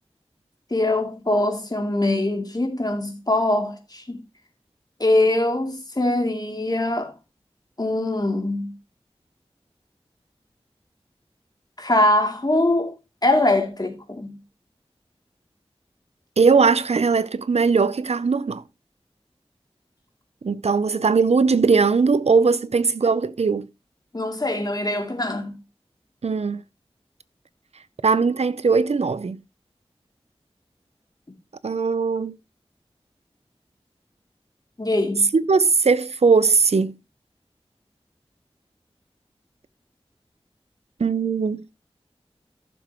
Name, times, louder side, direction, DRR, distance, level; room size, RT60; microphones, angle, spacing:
voice 1, 0.7-4.2 5.0-7.1 7.8-8.7 11.8-12.9 13.2-14.4 24.1-25.6 34.8-35.3, left 2 dB, 40° left, 2.9 m, -22 dB
voice 2, 16.4-18.6 20.4-23.7 26.2-26.6 28.0-29.4 31.6-32.4 35.3-37.0 41.0-41.6, right 5 dB, 90° right, 0.6 m, -19 dB
14.5 x 7.0 x 3.0 m
wide cardioid pair, 60°, 11 cm